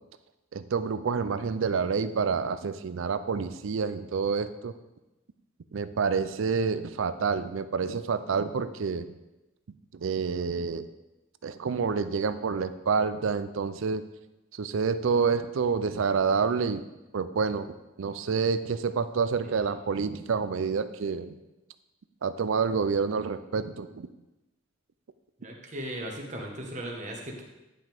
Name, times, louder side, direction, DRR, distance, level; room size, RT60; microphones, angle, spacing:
voice 1, 0.5-4.7 5.7-9.1 9.9-10.9 11.4-14.0 14.6-16.9 17.1-17.7 18.0-21.3 22.2-24.1, right 5 dB, 70° right, 13 dB, 0.4 m, -28 dB
voice 2, 25.4-27.4, right 1 dB, 35° right, 0 dB, 1.3 m, -38 dB
9.9 x 5.8 x 3.5 m, 1.0 s
head